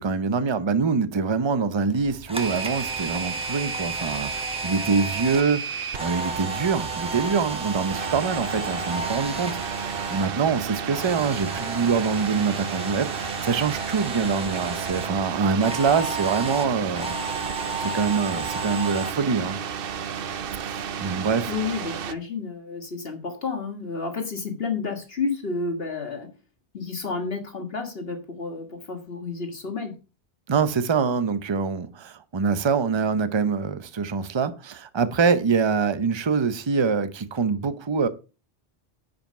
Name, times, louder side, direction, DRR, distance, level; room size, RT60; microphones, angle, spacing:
voice 1, 0.0-9.6 10.1-17.1 17.8-19.6 20.6-21.5 30.5-38.1, right 5 dB, 30° right, 0.7 m, -25 dB
Camera, 1.9-10.3 10.6-15.1 15.6-19.1, right 2 dB, 5° right, 1.2 m, -34 dB
sound 1, 2.3-22.1, right 7 dB, 60° right, 0.8 m, -32 dB
voice 2, 21.5-26.3 26.7-29.9, left 4 dB, 60° left, 1.9 m, -31 dB
10.5 x 5.2 x 5.4 m
omnidirectional pair, 1.1 m